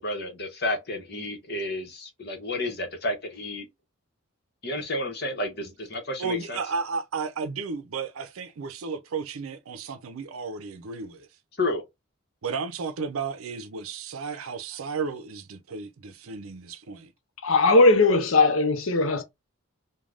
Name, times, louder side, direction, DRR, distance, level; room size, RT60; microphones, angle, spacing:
voice 1, 0.0-3.7 4.6-6.6 11.6-11.8, left 1 dB, 50° left, 0.9 m, -31 dB
voice 2, 6.2-11.3 12.4-17.1, right 5 dB, 85° right, 0.5 m, -33 dB
voice 3, 17.4-19.2, left 3 dB, 75° left, 0.6 m, -19 dB
3.3 x 2.2 x 2.4 m
head